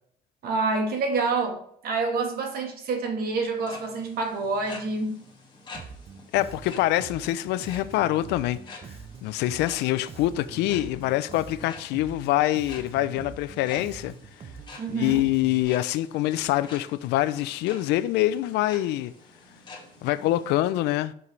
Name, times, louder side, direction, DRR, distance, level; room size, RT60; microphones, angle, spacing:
voice 1, 0.4-5.2 14.8-15.2, right 3 dB, 65° right, 1.3 m, -27 dB
sound 1, 3.4-20.6, left 3 dB, 25° left, 1.8 m, -48 dB
Bass guitar, 5.7-15.6, right 6 dB, 35° right, 0.6 m, -44 dB
voice 2, 6.3-8.6 9.2-14.1 14.9-19.1 20.0-21.1, left 15 dB, 85° left, 0.4 m, -25 dB
5.5 x 5.3 x 3.2 m
cardioid pair, 110°, 17 cm